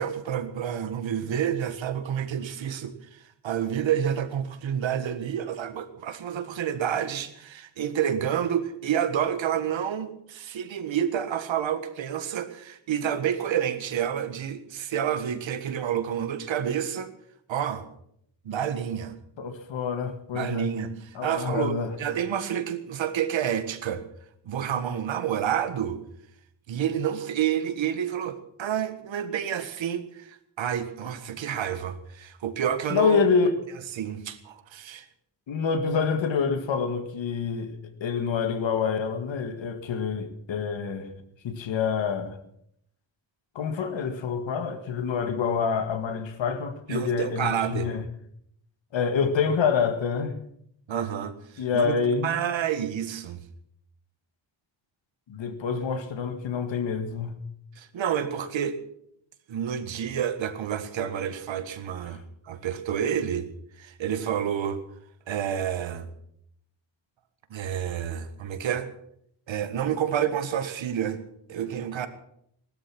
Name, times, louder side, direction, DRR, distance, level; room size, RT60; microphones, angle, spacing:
voice 1, 0.0-17.1 17.5-17.8 18.4-19.2 20.3-24.0 24.4-26.0 26.7-33.2 33.9-35.0 46.9-47.9 50.9-51.9 52.2-53.4 57.8-58.8 59.5-63.5 63.8-64.8 65.3-66.1 67.5-68.9 69.5-71.2 71.5-72.1, right 9 dB, 85° right, 11 dB, 1.6 m, -29 dB
voice 2, 19.4-20.7 21.2-21.9 32.9-33.6 35.5-41.1 41.4-42.4 43.6-48.0 48.9-50.4 51.6-52.3 55.3-57.3, left 6 dB, 75° left, 8 dB, 2.0 m, -27 dB
18.5 x 13.0 x 6.0 m, 0.72 s
wide cardioid pair, 160°, 45 cm